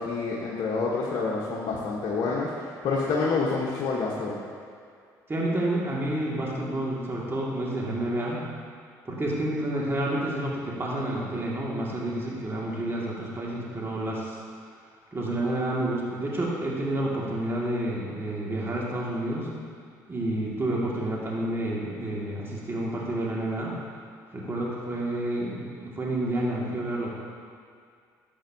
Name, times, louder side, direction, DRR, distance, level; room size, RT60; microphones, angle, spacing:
voice 1, 0.0-4.4, left 4 dB, 60° left, -5 dB, 1.1 m, -28 dB
voice 2, 5.3-8.4 9.1-14.4 15.1-19.5 20.1-23.8 24.3-27.1, right 1 dB, 25° right, -5 dB, 2.0 m, -29 dB
11.5 x 7.9 x 2.7 m, 2.2 s
hypercardioid pair, 60°, 9 cm